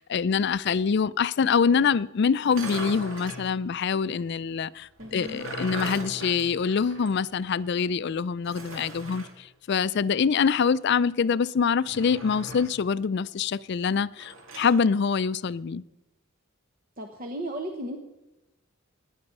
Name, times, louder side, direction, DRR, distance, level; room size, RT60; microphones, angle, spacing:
voice 1, 0.0-15.8, left 6 dB, 55° left, 0.4 m, -25 dB
sound 1, 2.4-3.5 5.0-7.3 7.6-7.7 8.4-9.3 11.8-12.8 14.2-14.8, right 2 dB, 70° right, 2.8 m, -39 dB
voice 2, 5.0-5.4 17.0-18.0, right 1 dB, 40° right, 1.2 m, -35 dB
17.5 x 10.5 x 5.4 m
head